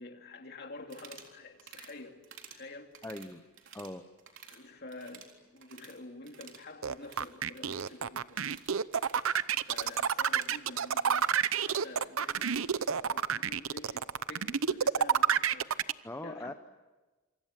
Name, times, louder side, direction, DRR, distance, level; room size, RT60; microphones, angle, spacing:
voice 1, 0.0-3.0 4.5-8.6 9.6-15.8 16.2-16.5, left 2 dB, 50° left, 4 dB, 2.8 m, -48 dB
sound 1, 0.8-1.3 1.6-1.9 2.2-2.6 2.9-3.9 4.2-4.6 4.9-6.0 6.2-12.6, right 7 dB, 60° right, 3.8 m, -53 dB
voice 2, 3.0-3.4 3.7-4.1 16.0-16.5, left 1 dB, 10° left, 8 dB, 0.8 m, -40 dB
sound 2, 6.8-15.9, right 7 dB, 80° right, 0.8 m, -29 dB
28.0 x 24.5 x 7.5 m, 1.2 s
head